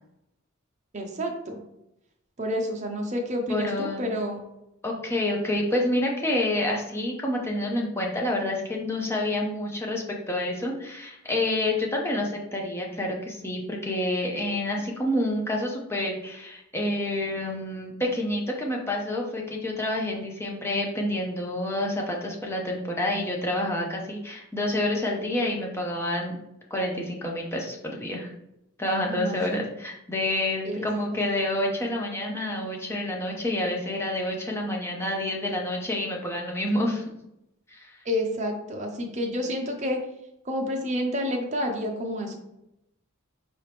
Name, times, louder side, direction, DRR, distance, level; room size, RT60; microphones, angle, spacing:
voice 1, 0.9-1.6 2.4-4.4 29.1-29.6 30.6-30.9 31.1-31.2 38.1-40.0 40.4-42.4, equal, 35° right, 2 dB, 0.7 m, -29 dB
voice 2, 3.5-4.1 4.8-26.4 26.7-28.3 28.8-37.0 37.7-37.9, left 1 dB, 10° left, -1 dB, 0.7 m, -28 dB
4.8 x 2.9 x 3.4 m, 0.83 s
head